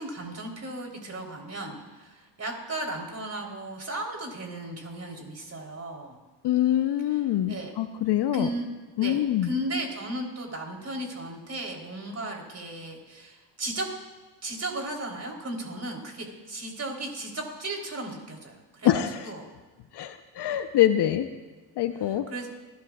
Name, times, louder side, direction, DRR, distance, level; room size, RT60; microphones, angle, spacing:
voice 1, 0.0-6.2 7.5-7.7 8.3-8.7 9.0-13.9 14.4-19.4 22.1-22.5, right 1 dB, 30° right, 1 dB, 3.7 m, -35 dB
voice 2, 6.4-8.5 9.0-9.5 18.8-19.3 19.9-21.3 21.8-22.3, left 12 dB, 55° left, 9 dB, 0.9 m, -24 dB
21.0 x 11.5 x 2.4 m, 1.3 s
hypercardioid pair, 65°, 50 cm